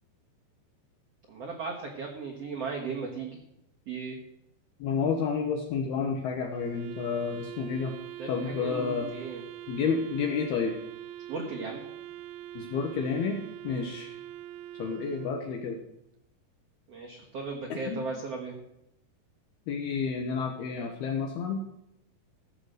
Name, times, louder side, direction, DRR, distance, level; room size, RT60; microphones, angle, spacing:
voice 1, 1.3-3.4 3.9-4.1 8.2-9.4 11.3-11.8 13.7-13.9 16.9-18.5, right 4 dB, 65° right, 0 dB, 1.6 m, -36 dB
voice 2, 4.8-7.9 8.3-9.1 9.7-10.7 12.5-14.1 14.8-15.8 17.7-18.1 19.7-21.6, left 5 dB, 70° left, 2 dB, 2.8 m, -30 dB
Wind instrument woodwind instrument, 6.5-15.8, right 13 dB, 90° right, 2.2 m, -43 dB
16.0 x 6.9 x 6.5 m, 0.82 s
omnidirectional pair, 5.2 m